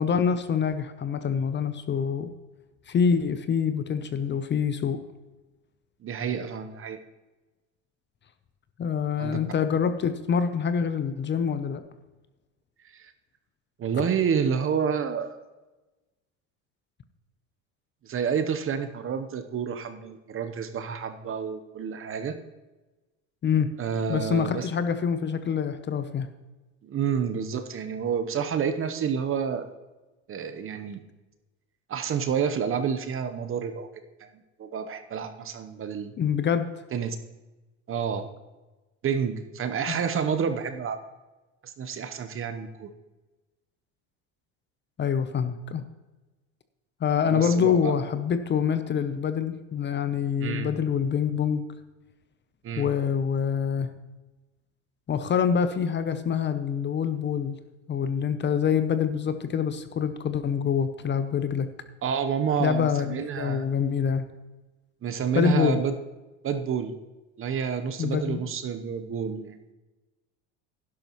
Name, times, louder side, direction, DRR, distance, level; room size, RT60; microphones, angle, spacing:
voice 1, 0.0-2.3 2.9-5.0 8.8-11.8 23.4-23.7 24.1-26.3 36.2-36.7 39.9-40.0 45.0-45.8 47.0-51.7 52.8-53.9 55.1-57.6 57.9-61.7 62.6-64.3 65.3-65.8 68.0-68.4, left 7 dB, 30° left, 10 dB, 0.7 m, -26 dB
voice 2, 6.0-7.0 9.2-9.4 12.9-13.1 13.8-15.4 18.0-22.4 23.8-24.7 26.8-29.7 30.3-31.0 31.9-33.9 34.2-34.3 34.6-36.1 36.9-37.2 37.9-38.3 39.0-41.0 41.6-42.9 47.2-47.9 50.4-50.7 52.6-52.9 62.0-63.7 65.0-66.0 66.4-66.9 67.4-69.6, right 7 dB, 35° right, 9 dB, 0.9 m, -29 dB
12.0 x 11.0 x 3.1 m, 1.1 s
supercardioid pair, 95°, 36 cm